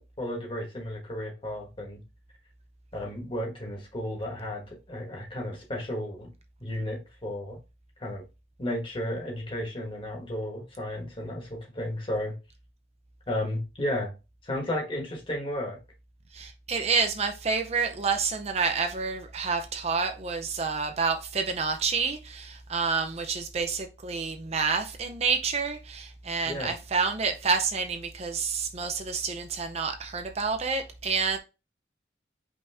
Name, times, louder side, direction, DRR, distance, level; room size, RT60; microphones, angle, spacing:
voice 1, 0.2-2.0 2.9-6.3 6.6-7.6 8.0-8.2 8.6-12.4 13.3-14.1 14.4-15.8 26.4-26.7, left 1 dB, 30° left, 1.4 m, -33 dB
voice 2, 16.3-31.4, right 5 dB, 35° right, 0.5 m, -28 dB
5.3 x 2.9 x 3.5 m
head